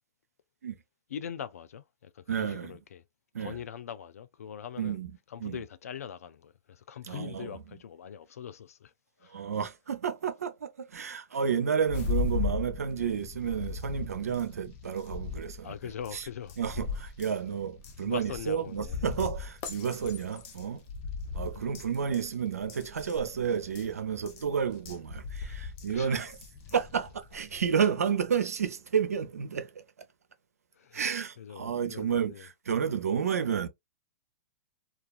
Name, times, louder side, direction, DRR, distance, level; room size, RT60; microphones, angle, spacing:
voice 1, 1.1-3.0 3.4-5.0 5.3-8.9 9.2-9.5 14.3-14.4 15.6-16.6 18.0-19.0 21.5-21.6 25.4-26.3 30.8-31.0 31.4-32.5, left 8 dB, 80° left, 0.4 m, -42 dB
voice 2, 2.3-2.7 3.3-3.6 4.8-5.6 7.1-7.6 9.3-15.8 16.1-16.3 16.6-20.8 21.3-26.3 26.7-29.8 30.9-33.7, right 7 dB, 85° right, 0.5 m, -31 dB
Car-Burning, 11.8-27.7, left 5 dB, 45° left, 0.7 m, -38 dB
2.3 x 2.3 x 2.3 m
hypercardioid pair, 115°, 8 cm